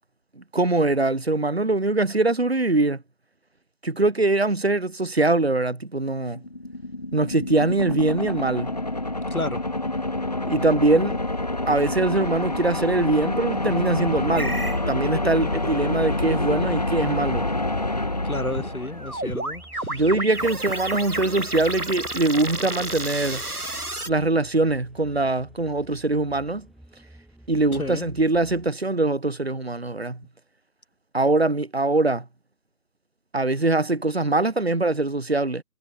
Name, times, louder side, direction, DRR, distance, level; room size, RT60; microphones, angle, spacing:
voice 1, 0.4-3.0 3.8-6.4 7.1-8.7 10.5-11.2 11.7-14.6 14.9-17.5 19.9-23.4 24.1-26.7 27.5-30.2 31.1-32.3 33.3-35.6, right 2 dB, 40° right, 2.3 m, -22 dB
sound 1, 6.3-19.3, left 2 dB, 25° left, 2.2 m, -27 dB
voice 2, 9.3-9.6 15.4-15.6 18.2-20.0 27.8-28.1, left 2 dB, 65° left, 4.2 m, -31 dB
sound 2, 10.5-28.7, right 1 dB, ahead, 3.3 m, -53 dB
sound 3, 14.4-14.8 18.5-24.1, right 1 dB, 75° right, 4.6 m, -31 dB
figure-of-eight pair, 165°, 46 cm